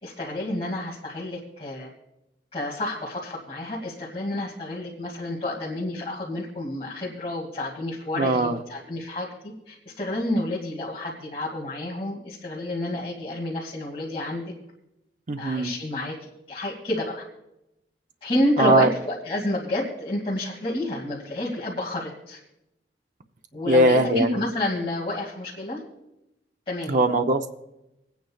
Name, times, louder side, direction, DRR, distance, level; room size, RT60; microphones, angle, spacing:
voice 1, 0.0-1.9 2.5-14.5 15.4-17.2 18.2-22.4 23.5-25.8 26.7-27.0, left 1 dB, 35° left, -5 dB, 2.3 m, -29 dB
voice 2, 8.2-8.6 15.3-15.7 18.6-18.9 23.7-24.3 26.9-27.5, right 1 dB, 45° right, 5 dB, 0.7 m, -20 dB
27.5 x 9.4 x 2.4 m, 0.88 s
head